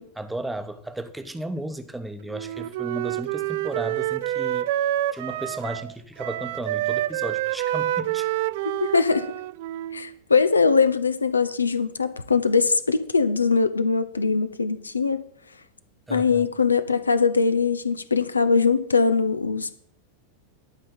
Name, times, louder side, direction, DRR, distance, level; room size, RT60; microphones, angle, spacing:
voice 1, 0.2-8.3 16.1-16.5, right 1 dB, 5° right, 1.0 m, -34 dB
Wind instrument woodwind instrument, 2.3-5.9 6.2-10.1, right 14 dB, 50° right, 0.4 m, -28 dB
voice 2, 8.8-9.2 9.9-15.2 16.1-19.8, left 5 dB, 75° left, 0.8 m, -21 dB
12.0 x 5.5 x 7.6 m
figure-of-eight pair, 90°, 0 cm